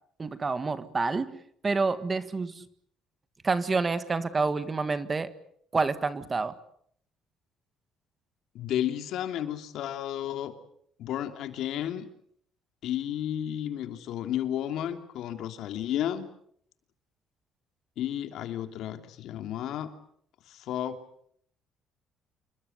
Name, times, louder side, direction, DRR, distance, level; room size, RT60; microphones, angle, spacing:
voice 1, 0.2-2.6 3.4-5.3 5.7-6.5, right 4 dB, 20° right, 12 dB, 1.6 m, -28 dB
voice 2, 8.5-10.5 11.0-12.1 12.8-16.3 18.0-19.9 20.5-21.0, left 11 dB, 70° left, 8 dB, 3.0 m, -32 dB
28.0 x 23.0 x 8.1 m, 0.68 s
cardioid pair, 145°, 0 cm